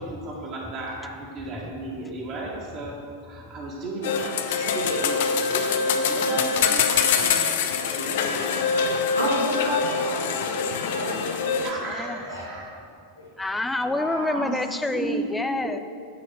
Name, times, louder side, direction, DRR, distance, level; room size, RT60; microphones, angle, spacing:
voice 1, 0.0-2.9 3.2-8.2 8.6-8.8 11.6-12.7 14.3-14.5 14.9-15.2 15.6-15.8, right 2 dB, 40° right, -4 dB, 1.7 m, -34 dB
sound 1, 4.0-11.7, left 5 dB, 55° left, 0.5 m, -24 dB
voice 2, 9.1-11.7 12.3-12.4 13.2-13.3 13.8-14.5, left 1 dB, 90° right, -7 dB, 2.0 m, -31 dB
voice 3, 11.8-12.2 13.4-15.8, left 2 dB, 5° left, 9 dB, 0.4 m, -28 dB
9.3 x 4.2 x 6.2 m, 2.2 s
figure-of-eight pair, 90°, 0 cm